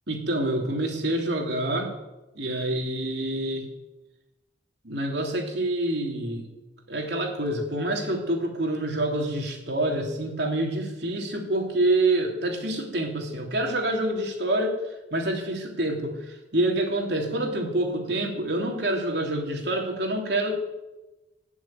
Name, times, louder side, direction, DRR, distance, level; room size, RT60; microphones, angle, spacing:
voice 1, 0.1-2.0 2.3-3.7 4.8-6.5 6.9-14.8 15.1-20.5, right 1 dB, 65° right, 1 dB, 3.2 m, -27 dB
18.5 x 7.2 x 9.1 m, 1.0 s
head